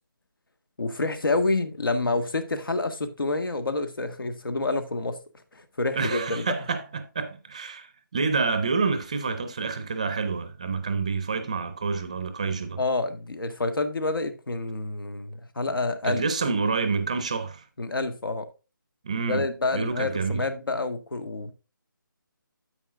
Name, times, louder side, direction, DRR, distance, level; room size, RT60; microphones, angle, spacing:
voice 1, 0.8-5.2 5.5-6.5 12.8-16.2 17.8-18.4 19.2-21.5, left 3 dB, 85° left, 1.6 m, -28 dB
voice 2, 5.9-12.8 16.0-17.6 19.0-19.5 19.7-20.4, right 4 dB, 20° right, 0.5 m, -28 dB
9.7 x 8.3 x 2.5 m
hypercardioid pair, 175°, 11 cm